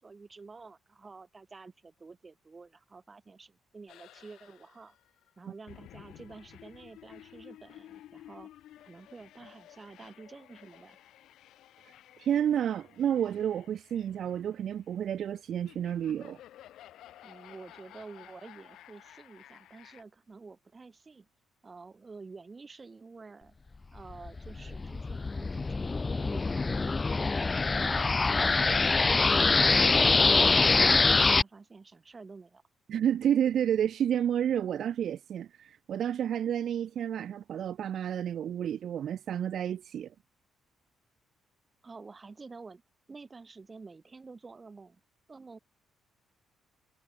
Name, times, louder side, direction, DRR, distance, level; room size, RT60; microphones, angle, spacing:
voice 1, 0.0-4.9 5.4-8.5 8.8-11.0 17.2-21.3 21.6-23.5 23.9-28.8 29.2-30.7 31.2-32.6 41.8-42.8 43.1-45.0 45.3-45.6, right 4 dB, 30° right, 3.5 m, -49 dB
sound 1, 3.9-20.0, left 13 dB, 80° left, 5.0 m, -54 dB
voice 2, 12.2-16.4 32.9-40.1, right 9 dB, 65° right, 1.3 m, -30 dB
sound 2, 24.1-31.4, left 3 dB, 25° left, 0.7 m, -24 dB
cardioid pair, 90°, 0 cm